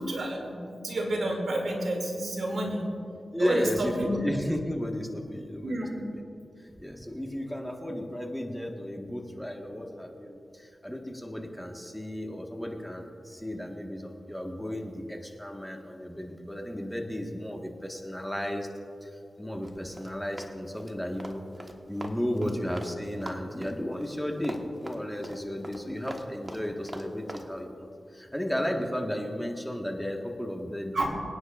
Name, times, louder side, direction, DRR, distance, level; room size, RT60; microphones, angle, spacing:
voice 1, 0.0-2.8 3.4-4.1 5.6-6.0 22.4-22.5 30.9-31.1, right 1 dB, 80° right, 0 dB, 2.5 m, -30 dB
voice 2, 3.3-5.8 6.1-6.2 6.6-18.7 19.0-31.1, equal, 5° left, 1 dB, 1.5 m, -34 dB
Run, 19.6-22.9 23.2-27.5, right 1 dB, 25° right, 1.3 m, -42 dB
25.0 x 9.6 x 2.5 m, 2.5 s
cardioid pair, 55°, 0 cm